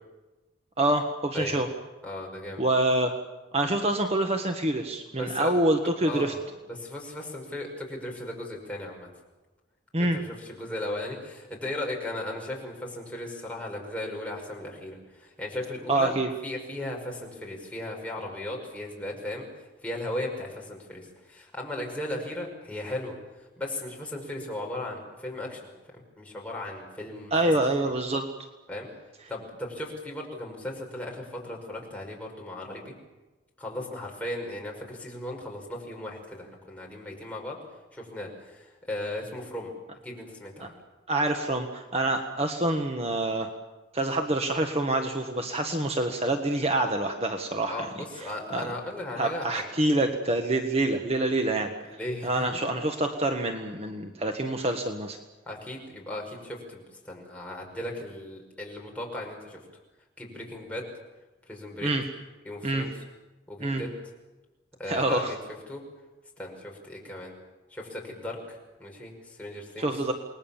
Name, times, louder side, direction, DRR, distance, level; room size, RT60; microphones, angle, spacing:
voice 1, 0.8-1.7 2.6-3.1 3.5-6.3 9.9-10.2 15.9-16.3 27.3-28.2 40.6-40.7 41.1-43.5 43.9-47.8 48.5-48.7 49.2-51.7 52.2-55.2 61.8-62.0 62.6-62.8 63.6-63.8 64.9-65.3 69.8-70.1, right 1 dB, 35° right, 5 dB, 1.5 m, -26 dB
voice 2, 2.0-2.6 5.1-5.6 6.0-9.1 10.0-16.1 16.4-19.5 19.8-27.5 28.7-28.9 29.3-32.9 33.6-37.6 37.9-39.7 40.0-40.7 47.7-49.7 51.9-52.6 55.5-59.6 60.2-60.9 61.5-61.9 62.4-62.9 63.5-64.0 64.8-65.2 65.7-65.8 66.4-67.3 67.7-69.9, left 1 dB, 10° left, -1 dB, 5.6 m, -37 dB
28.5 x 20.5 x 7.3 m, 1.2 s
head